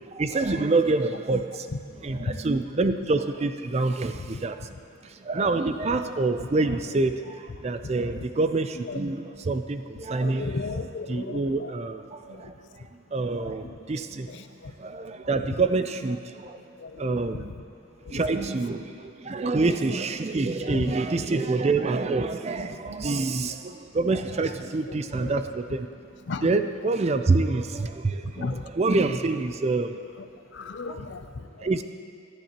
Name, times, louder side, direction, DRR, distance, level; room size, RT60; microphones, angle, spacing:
voice 1, 0.1-1.7 2.0-4.8 5.0-10.8 11.1-14.3 14.8-16.6 17.0-17.5 18.1-25.9 26.4-30.0 30.9-31.1 31.6-31.8, right 3 dB, 30° right, 9 dB, 0.4 m, -27 dB
voice 2, 10.2-11.8 12.3-12.4 13.4-13.7 14.3-14.7 15.5-15.6 16.8-17.4 18.1-18.2 19.4-19.6 20.7-21.3 24.9-25.5 26.3-26.6 28.3-28.6 30.5-31.8, left 3 dB, 55° left, 10 dB, 0.5 m, -36 dB
17.0 x 12.0 x 2.9 m, 2.5 s
head